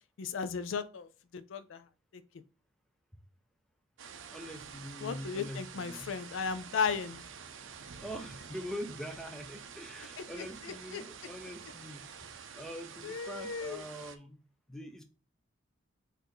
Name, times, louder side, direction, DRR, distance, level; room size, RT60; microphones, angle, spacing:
voice 1, 0.2-1.8 2.1-2.2 5.0-7.2 10.2-11.0 13.0-13.8, left 6 dB, 65° left, 0.4 m, -36 dB
sound 1, 4.0-14.2, right 6 dB, 65° right, 0.5 m, -48 dB
voice 2, 4.3-6.1 8.0-14.4 14.7-15.0, equal, ahead, 0.4 m, -44 dB
4.4 x 2.6 x 4.6 m
head